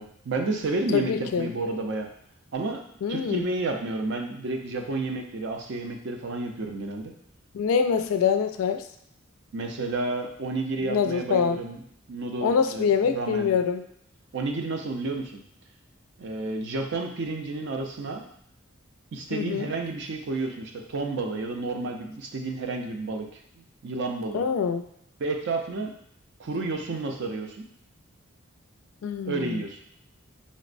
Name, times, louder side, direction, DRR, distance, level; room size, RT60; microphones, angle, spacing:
voice 1, 0.0-2.1 2.5-2.8 3.1-7.1 9.5-11.8 12.1-12.9 13.1-13.6 14.3-15.4 16.2-18.2 19.1-24.5 25.2-25.9 26.4-27.6 29.3-29.8, right 3 dB, 55° right, 3 dB, 0.5 m, -31 dB
voice 2, 0.9-1.5 3.0-3.5 7.5-8.8 10.8-11.6 12.4-13.8 19.3-19.7 24.3-24.8 29.0-29.6, left 6 dB, 80° left, 8 dB, 0.3 m, -25 dB
5.2 x 2.0 x 2.5 m, 0.70 s
head